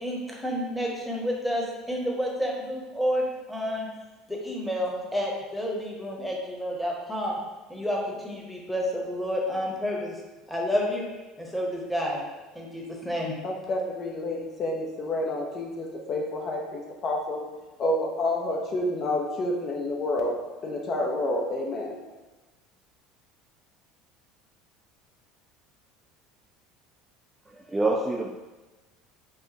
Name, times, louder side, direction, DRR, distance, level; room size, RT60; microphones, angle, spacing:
voice 1, 0.0-3.2 3.5-3.9 4.3-7.4 7.7-8.0 8.2-10.1 10.5-11.1 11.4-12.2 12.5-13.3, equal, ahead, -2 dB, 0.9 m, -29 dB
voice 2, 13.4-17.4 17.8-20.3 20.6-21.9, left 1 dB, 45° left, 0 dB, 0.6 m, -29 dB
voice 3, 27.5-28.3, right 2 dB, 15° right, -1 dB, 0.3 m, -26 dB
4.7 x 2.0 x 2.8 m, 1.2 s
hypercardioid pair, 70°, 0 cm